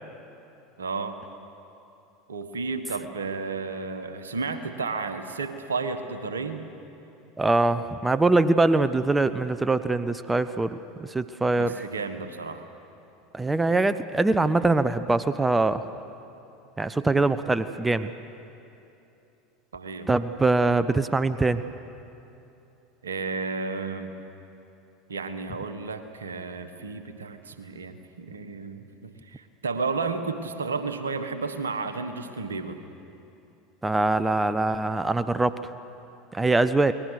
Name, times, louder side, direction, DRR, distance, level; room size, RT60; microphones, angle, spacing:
voice 1, 0.8-1.2 2.3-6.6 11.6-12.7 19.7-20.1 23.0-24.1 25.1-32.8, right 4 dB, 85° right, 9 dB, 1.5 m, -32 dB
voice 2, 7.4-11.7 13.3-15.8 16.8-18.1 20.1-21.6 33.8-35.6 36.3-36.9, right 2 dB, 15° right, 14 dB, 0.9 m, -23 dB
30.0 x 21.0 x 6.6 m, 2.9 s
hypercardioid pair, 80°, 0 cm